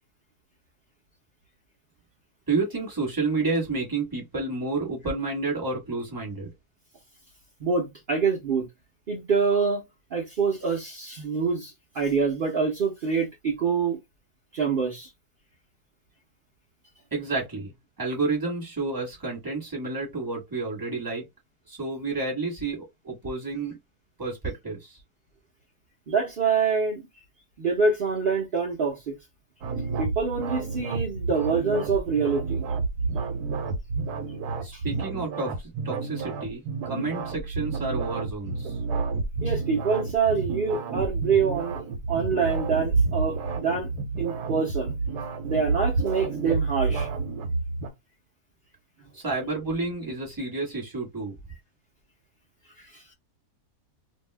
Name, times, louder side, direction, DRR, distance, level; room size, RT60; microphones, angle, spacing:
voice 1, 2.5-6.5 17.1-21.2 21.7-23.8 24.2-25.0 34.6-38.8 49.1-51.3, right 3 dB, 15° right, 1.1 m, -30 dB
voice 2, 7.6-8.7 9.1-9.8 10.1-14.0 14.5-15.1 26.1-27.1 27.6-29.2 30.0-32.7 34.7-34.8 39.4-41.8 42.1-43.9 44.2-45.0 45.4-47.1 52.8-53.1, right 5 dB, 50° right, 0.6 m, -26 dB
sound 1, 29.6-47.9, right 4 dB, 75° right, 1.2 m, -29 dB
2.7 x 2.3 x 3.2 m
omnidirectional pair, 1.8 m